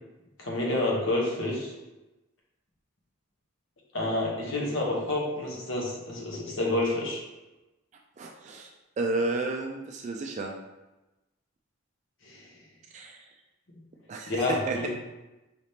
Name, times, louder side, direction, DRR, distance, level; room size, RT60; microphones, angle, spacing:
voice 1, 0.4-1.7 3.9-7.2 12.2-12.5 14.3-14.9, left 2 dB, 65° left, -2 dB, 1.0 m, -29 dB
voice 2, 8.2-8.7 9.0-10.5 12.9-13.2 14.1-14.9, right 2 dB, 35° right, 2 dB, 0.3 m, -32 dB
4.9 x 3.4 x 2.8 m, 1.0 s
head